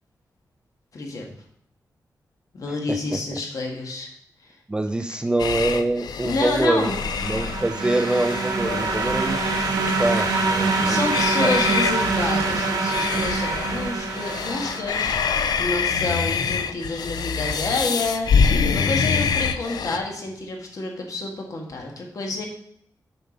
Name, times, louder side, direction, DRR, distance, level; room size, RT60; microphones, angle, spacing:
voice 1, 0.9-1.3 2.5-4.1 4.4-4.6 6.2-7.0 10.8-22.5, left 2 dB, 60° left, 1 dB, 1.8 m, -29 dB
voice 2, 4.7-6.9 7.2-9.4 9.7-11.0 11.4-11.6, right 2 dB, 15° right, 7 dB, 0.4 m, -25 dB
sound 1, 5.4-20.0, left 6 dB, 80° left, 0.5 m, -26 dB
sound 2, 6.7-15.3, right 3 dB, 75° right, 1.4 m, -25 dB
6.8 x 5.3 x 5.1 m, 0.67 s
wide cardioid pair, 140°, 7 cm